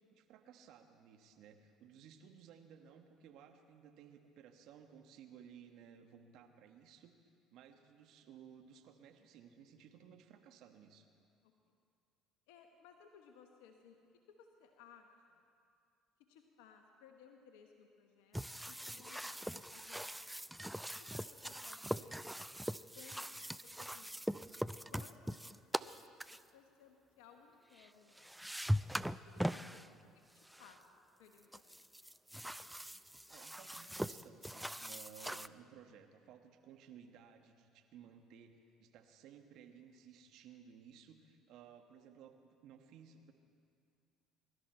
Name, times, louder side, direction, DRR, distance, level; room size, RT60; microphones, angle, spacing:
voice 1, 0.1-7.1 7.5-11.1 21.9-22.1 29.6-30.0 33.3-43.3, right 8 dB, 65° right, 6 dB, 1.3 m, -58 dB
voice 2, 12.5-14.0 14.3-15.4 16.3-20.2 21.0-22.1 22.9-24.2 24.9-26.0 26.3-28.6 29.3-30.0 30.3-30.8 31.2-32.0, left 7 dB, 80° left, 4 dB, 1.0 m, -61 dB
sound 1, 18.3-26.4 27.8-27.9 28.2-29.9 30.4-30.7 31.5-35.5, equal, 5° right, 0.4 m, -41 dB
22.5 x 12.5 x 4.5 m, 2.4 s
hypercardioid pair, 65°, 0 cm